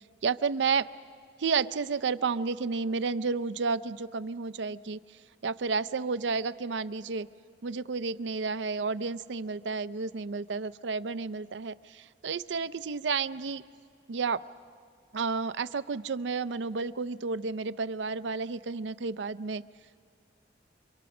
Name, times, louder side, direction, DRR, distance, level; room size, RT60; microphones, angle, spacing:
voice 1, 0.2-0.9 1.4-5.0 5.4-7.3 7.6-13.6 14.1-14.4 15.1-19.6, right 4 dB, 90° right, 16 dB, 0.5 m, -31 dB
28.0 x 24.5 x 6.0 m, 2.1 s
head